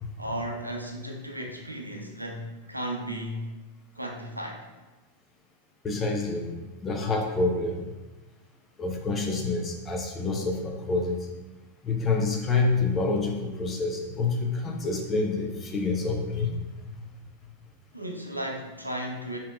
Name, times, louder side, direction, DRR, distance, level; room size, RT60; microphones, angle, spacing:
voice 1, 0.2-3.5 3.9-4.7 17.9-19.4, right 1 dB, 85° right, 1 dB, 0.5 m, -35 dB
voice 2, 5.8-6.5 6.8-7.9 8.8-11.3 11.8-16.5, left 3 dB, 25° left, 2 dB, 0.6 m, -27 dB
4.3 x 3.5 x 2.3 m, 1.2 s
figure-of-eight pair, 90°, 0 cm